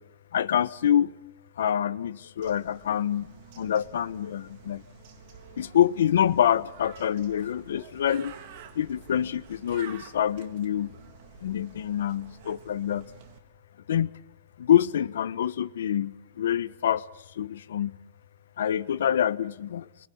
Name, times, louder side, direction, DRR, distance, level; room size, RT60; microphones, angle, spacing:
voice 1, 0.3-1.1 1.6-3.3 3.6-4.8 5.6-8.3 8.8-10.9 11.4-13.0 13.9-14.1 14.6-17.0 17.4-17.9 18.6-19.8, left 10 dB, 80° left, 1.2 m, -26 dB
Bird, 2.4-13.4, right 7 dB, 40° right, 3.5 m, -50 dB
29.0 x 23.5 x 8.7 m
supercardioid pair, 170°, 0 cm